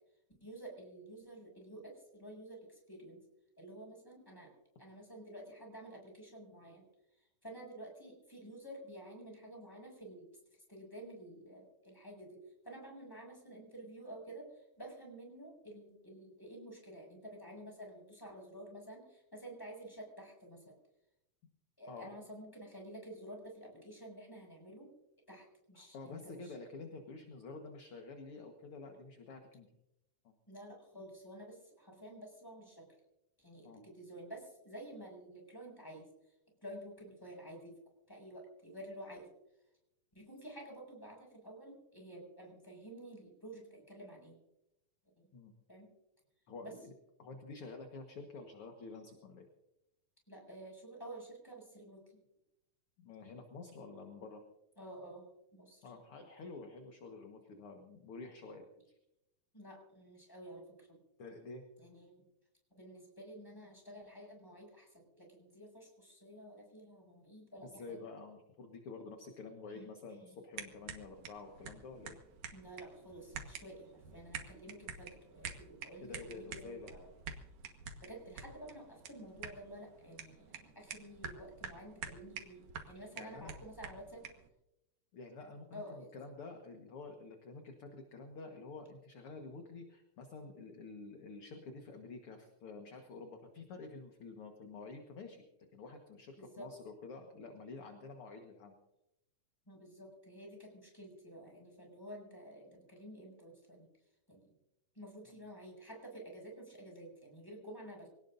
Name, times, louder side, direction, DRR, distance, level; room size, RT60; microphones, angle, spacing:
voice 1, 0.4-3.2 3.6-4.5 4.8-6.9 7.1-10.3 10.7-20.7 21.8-24.9 25.3-26.5 30.5-32.9 33.4-36.3 36.6-37.8 38.1-39.3 40.1-44.4 45.2-45.3 45.7-45.9 46.6-46.7 50.3-52.2 54.8-55.8 59.5-61.0 61.8-62.2 62.8-68.0 69.7-69.9 70.2-70.3 72.5-77.1 78.0-84.2 85.7-86.1 96.4-96.7 99.7-103.9 104.3-104.5 104.9-108.1, right 1 dB, 5° left, 0 dB, 6.6 m, -51 dB
voice 2, 25.7-29.7 30.2-30.3 33.6-33.8 45.3-45.5 46.5-46.9 47.2-49.5 53.0-54.4 55.8-59.0 61.2-61.6 67.6-72.2 76.0-76.9 83.0-83.5 85.1-95.4 95.7-98.8, left 3 dB, 50° left, 4 dB, 2.0 m, -49 dB
sound 1, 70.5-84.5, right 6 dB, 65° right, 2.7 m, -49 dB
25.5 x 18.5 x 2.6 m, 0.89 s
omnidirectional pair, 3.8 m